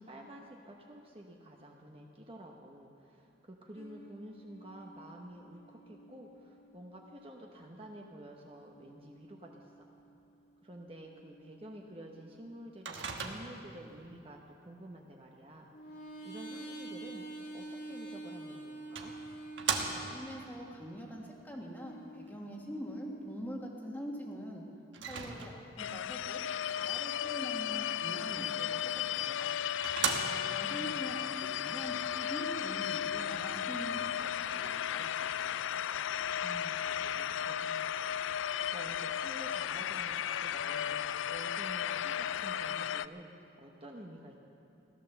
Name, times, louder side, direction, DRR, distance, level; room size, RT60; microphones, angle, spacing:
voice 1, 0.0-9.9 10.6-19.1 30.2-31.0 36.4-41.0 41.3-44.4, right 1 dB, 30° right, 0 dB, 0.9 m, -50 dB
sound 1, 3.7-7.7 8.7-12.8 15.7-20.5 21.8-23.3, right 2 dB, 60° left, 2.3 m, -49 dB
Microwave oven, 12.9-13.8 18.1-18.2 19.0-20.3 24.9-25.8 29.0-29.1 29.5-29.6 29.8-30.7, right 6 dB, 75° right, 1.3 m, -36 dB
voice 2, 20.0-24.6 25.1-26.4 26.7-28.9 29.2-29.6 30.3-35.6, equal, 10° left, -1 dB, 1.6 m, -44 dB
sound 2, 25.8-43.1, left 9 dB, 80° left, 0.3 m, -35 dB
16.5 x 12.0 x 7.0 m, 2.7 s
head